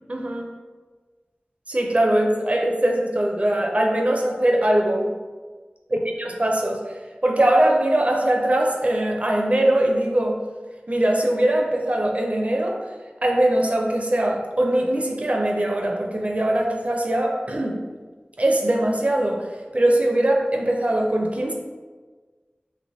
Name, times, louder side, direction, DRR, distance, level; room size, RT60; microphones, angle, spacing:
voice 1, 0.1-0.5 1.7-5.1 6.2-6.9 7.2-10.4 10.9-12.8 13.2-17.8 18.4-19.4 19.7-21.5, right 1 dB, 45° right, 1 dB, 0.4 m, -21 dB
3.2 x 2.9 x 2.6 m, 1.4 s
wide cardioid pair, 50°, 3 cm